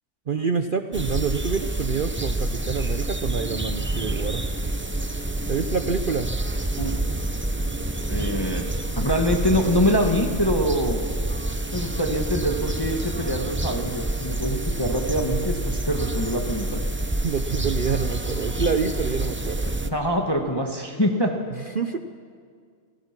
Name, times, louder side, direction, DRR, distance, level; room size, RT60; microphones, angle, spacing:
voice 1, 0.3-4.5 5.5-6.3 17.2-19.8 21.6-22.0, right 5 dB, 50° right, 8 dB, 0.6 m, -27 dB
sound 1, 0.9-19.9, right 2 dB, 15° right, 0.4 m, -28 dB
voice 2, 8.1-8.6 8.9-11.0 11.7-16.8 19.8-21.3, equal, 15° left, 2 dB, 1.5 m, -24 dB
28.0 x 16.0 x 6.0 m, 2.1 s
omnidirectional pair, 1.6 m